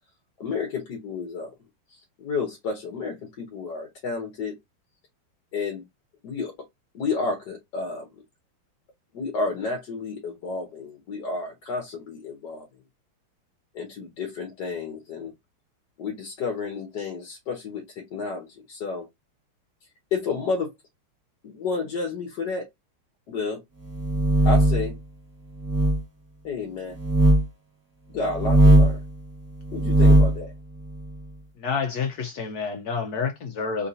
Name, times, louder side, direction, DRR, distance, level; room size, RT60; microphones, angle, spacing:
voice 1, 0.4-1.5 1.9-4.6 5.5-5.8 6.2-6.5 6.9-8.1 9.1-12.6 13.7-15.3 16.0-19.1 20.1-20.7 21.4-22.7 23.3-23.6 24.4-25.0 26.4-27.0 28.1-29.0 29.7-30.5, left 4 dB, 60° left, 1.3 m, -31 dB
sound 1, 23.9-24.9 25.6-26.0 27.0-27.4 28.3-29.0 29.7-30.4, right 1 dB, 10° right, 1.1 m, -18 dB
voice 2, 31.6-33.9, left 5 dB, 75° left, 0.8 m, -28 dB
3.7 x 2.8 x 2.5 m
omnidirectional pair, 2.4 m